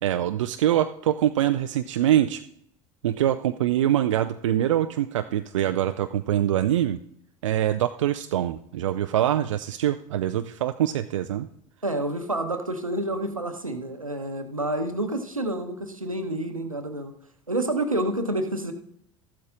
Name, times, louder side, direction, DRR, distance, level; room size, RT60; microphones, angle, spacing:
voice 1, 0.0-2.4 3.0-7.0 7.4-11.5, right 11 dB, 70° right, 9 dB, 0.4 m, -24 dB
voice 2, 11.8-17.1 17.5-18.7, right 1 dB, 90° right, 6 dB, 0.9 m, -28 dB
13.5 x 12.0 x 2.5 m, 0.75 s
figure-of-eight pair, 70°, 17 cm